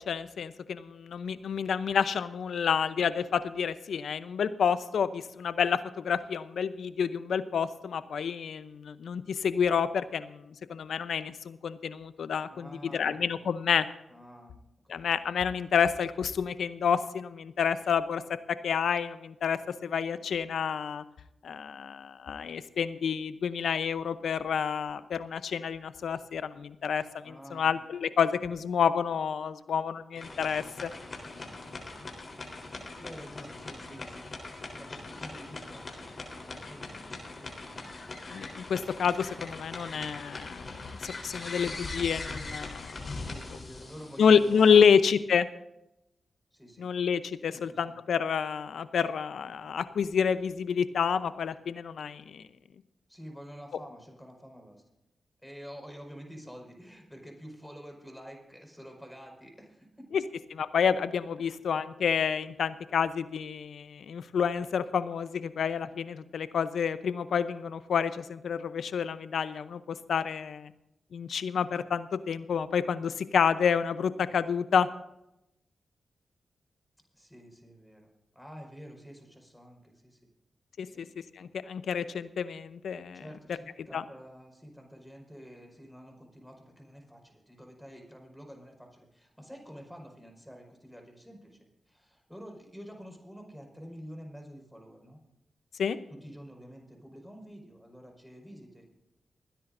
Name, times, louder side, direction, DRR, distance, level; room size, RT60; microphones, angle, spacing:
voice 1, 0.0-13.9 14.9-18.2 18.5-21.0 21.4-30.9 38.3-40.7 41.0-43.1 44.2-45.5 46.8-52.4 60.1-60.2 60.7-70.7 71.1-74.9 80.8-81.1 81.4-83.2 83.9-84.0 95.8-96.0, left 7 dB, 80° left, 13 dB, 0.7 m, -29 dB
voice 2, 12.5-13.6 14.1-14.6 14.8-15.1 27.2-27.7 28.4-28.6 31.2-32.4 33.0-38.0 43.1-45.0 46.5-47.0 47.5-48.0 53.1-54.8 55.4-60.0 61.4-61.6 77.1-80.3 80.9-81.0 83.1-91.6 91.9-95.2 96.1-98.9, equal, 5° left, 2 dB, 5.1 m, -49 dB
sound 1, 30.1-45.0, left 3 dB, 55° left, 3.7 m, -41 dB
28.5 x 10.5 x 2.6 m, 0.87 s
supercardioid pair, 40°, 0 cm